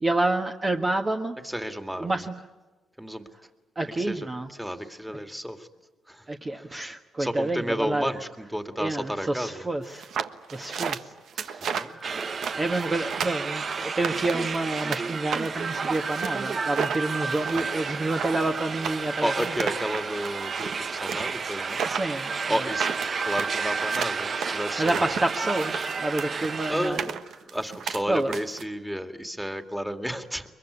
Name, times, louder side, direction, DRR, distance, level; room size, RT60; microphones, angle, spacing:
voice 1, 0.0-1.3 2.0-2.4 3.8-4.5 6.3-8.1 8.8-10.1 10.5-11.0 11.3-12.2 12.6-19.5 21.1-21.2 21.9-22.6 24.8-27.0 28.1-28.3, right 2 dB, 25° right, 4 dB, 1.4 m, -28 dB
voice 2, 1.4-2.1 3.0-3.3 3.8-5.7 6.1-6.3 6.5-6.7 7.2-9.7 11.7-12.0 19.2-21.9 22.5-22.9 23.2-25.1 26.7-27.1 27.5-30.5, equal, 5° right, 7 dB, 2.2 m, -32 dB
sound 1, 10.0-15.0 15.3-28.6, right 7 dB, 65° right, 1.3 m, -34 dB
sound 2, 12.0-26.9, right 5 dB, 45° right, 1.0 m, -31 dB
23.0 x 22.5 x 9.8 m, 1.2 s
cardioid pair, 90°, 0 cm